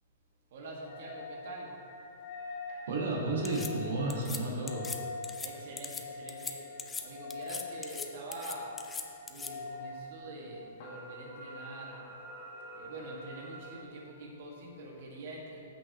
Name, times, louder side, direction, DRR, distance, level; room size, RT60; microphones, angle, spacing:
voice 1, 0.5-1.7 5.4-8.7 9.3-12.0 12.7-15.6, right 2 dB, 55° right, -2 dB, 1.7 m, -45 dB
sound 1, 0.8-13.7, left 3 dB, 50° left, 1.9 m, -45 dB
voice 2, 2.9-4.9, right 2 dB, 80° right, -2 dB, 1.5 m, -32 dB
sound 2, 3.4-3.7 4.1-4.4 4.7-5.0 5.2-5.5 5.8-6.0 6.3-6.5 6.8-7.0 7.3-8.1 8.3-9.5, left 5 dB, 10° left, 0.4 m, -40 dB
13.5 x 6.1 x 3.0 m, 2.5 s
hypercardioid pair, 165°, 0 cm